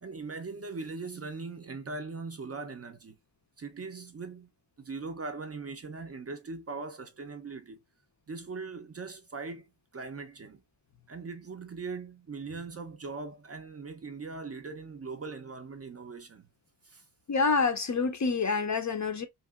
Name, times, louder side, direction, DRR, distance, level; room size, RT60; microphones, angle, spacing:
voice 1, 0.0-3.2 3.6-4.5 4.8-7.8 8.3-10.6 11.1-16.5 16.8-17.0, right 4 dB, 35° right, 0.4 m, -40 dB
voice 2, 17.3-19.3, left 4 dB, 40° left, 0.4 m, -27 dB
2.8 x 2.8 x 2.3 m
wide cardioid pair, 115°, 47 cm